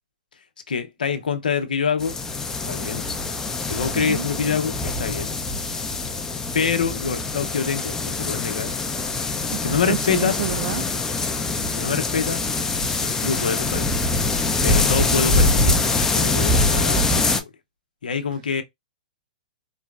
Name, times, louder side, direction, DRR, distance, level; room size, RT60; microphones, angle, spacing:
voice 1, 0.7-2.2 2.7-3.1 3.7-5.3 6.5-8.7 9.5-10.4 11.6-12.5 13.0-13.9 14.6-15.8 16.1-17.5 18.0-18.6, left 6 dB, 85° left, 0.8 m, -26 dB
sound 1, 2.0-17.4, left 3 dB, 10° left, 0.5 m, -24 dB
voice 2, 3.9-4.3 9.5-10.9, right 12 dB, 60° right, 0.4 m, -29 dB
4.1 x 2.0 x 2.3 m
hypercardioid pair, 130°, 5 cm